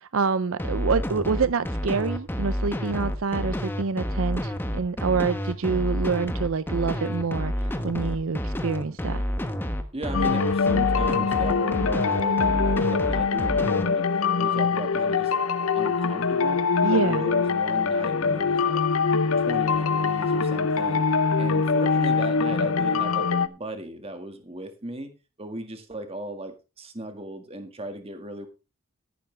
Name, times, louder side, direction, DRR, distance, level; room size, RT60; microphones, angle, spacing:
voice 1, 0.0-7.5 7.8-9.2 16.8-17.3, right 5 dB, 70° right, 15 dB, 0.5 m, -26 dB
sound 1, 0.6-13.8, equal, 10° left, 1.1 m, -29 dB
voice 2, 9.9-15.4 15.7-18.9 19.4-21.1 21.4-25.1 25.4-28.5, right 1 dB, 25° right, 7 dB, 1.8 m, -36 dB
sound 2, 10.1-23.5, left 5 dB, 75° left, 0.8 m, -23 dB
13.5 x 11.0 x 3.3 m, 0.30 s
head